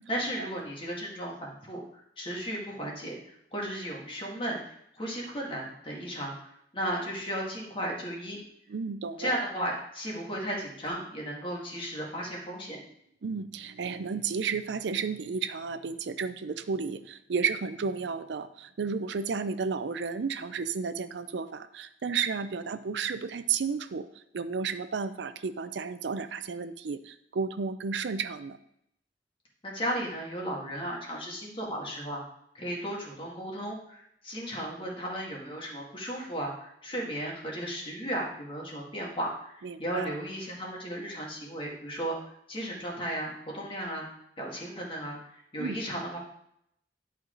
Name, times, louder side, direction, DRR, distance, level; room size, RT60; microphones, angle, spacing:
voice 1, 0.1-8.4 9.2-12.8 29.6-32.2 32.5-42.2 42.5-44.1 44.4-46.2, equal, 30° left, -2 dB, 2.0 m, -35 dB
voice 2, 8.7-9.4 13.2-24.1 24.3-28.6 39.6-40.1 45.6-45.8, right 5 dB, 75° right, 11 dB, 0.5 m, -32 dB
10.5 x 4.6 x 3.8 m, 0.75 s
head